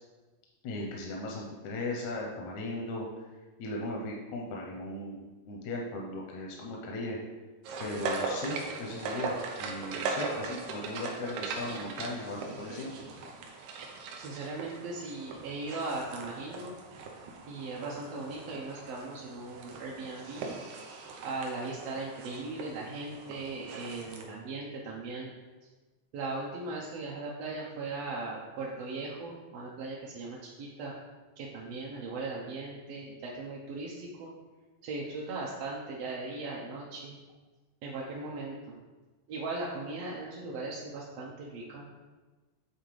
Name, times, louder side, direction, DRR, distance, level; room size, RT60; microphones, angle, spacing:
voice 1, 0.6-3.1 3.6-7.2 7.8-13.0, left 2 dB, 85° left, -1 dB, 2.0 m, -37 dB
sound 1, 7.7-24.2, right 4 dB, 90° right, 2.2 m, -40 dB
voice 2, 14.2-16.7 17.5-20.5 21.2-25.3 26.1-30.9 31.4-34.3 34.8-37.1 37.8-38.6 39.3-41.8, right 3 dB, 75° right, -3 dB, 1.6 m, -38 dB
9.1 x 3.8 x 3.1 m, 1.3 s
omnidirectional pair, 3.4 m